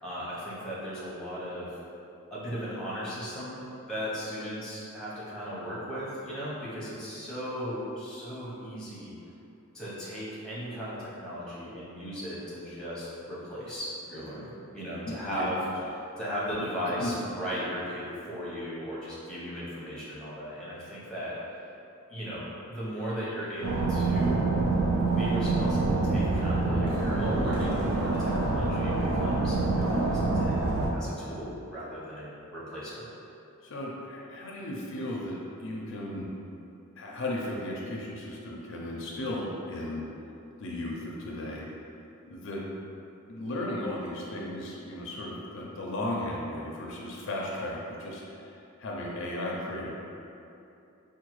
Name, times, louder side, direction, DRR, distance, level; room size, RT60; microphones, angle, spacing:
voice 1, 0.0-1.8 2.3-3.6 3.9-9.1 9.7-14.5 14.7-15.6 16.2-21.4 22.1-24.5 25.2-33.0, equal, 5° left, -9 dB, 0.7 m, -36 dB
voice 2, 15.1-15.5 16.5-16.7 17.0-17.1 31.2-31.3 33.6-36.3 37.0-40.1 40.6-41.7 42.3-42.6 43.3-49.9, left 1 dB, 60° left, -3 dB, 0.4 m, -35 dB
sound 1, 23.6-30.9, right 3 dB, 65° right, 0.4 m, -26 dB
4.5 x 2.2 x 3.0 m, 2.7 s
head